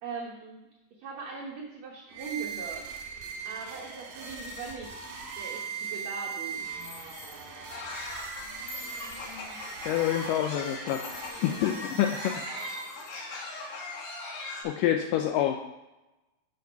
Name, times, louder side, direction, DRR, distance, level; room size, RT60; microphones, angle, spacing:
voice 1, 0.0-2.9 3.4-5.0 5.4-6.7, right 5 dB, 65° right, -2 dB, 1.8 m, -40 dB
sound 1, 2.1-13.1, right 5 dB, 85° right, 3.2 m, -40 dB
sound 2, 6.8-7.5 8.7-9.6 10.9-11.6 12.6-13.2, left 5 dB, 50° left, 2.9 m, -47 dB
sound 3, 7.7-14.6, left 3 dB, 70° left, 3.2 m, -40 dB
voice 2, 9.9-11.1 11.4-12.4 14.6-15.6, left 11 dB, 85° left, 5 dB, 1.9 m, -27 dB
9.0 x 5.1 x 4.6 m, 1.0 s
omnidirectional pair, 4.3 m